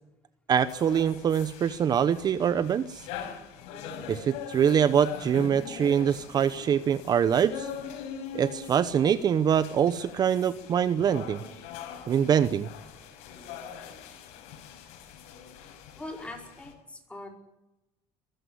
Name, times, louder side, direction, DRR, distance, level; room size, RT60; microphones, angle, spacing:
voice 1, 0.5-3.0 4.1-7.7 8.3-11.4 12.1-12.7, right 8 dB, 40° right, 14 dB, 0.8 m, -24 dB
sound 1, 0.6-16.7, left 7 dB, 85° left, 5.4 m, -42 dB
voice 2, 16.0-17.3, left 2 dB, 10° left, 3 dB, 4.9 m, -41 dB
22.5 x 14.5 x 9.7 m, 0.98 s
cardioid pair, 130°, 11 cm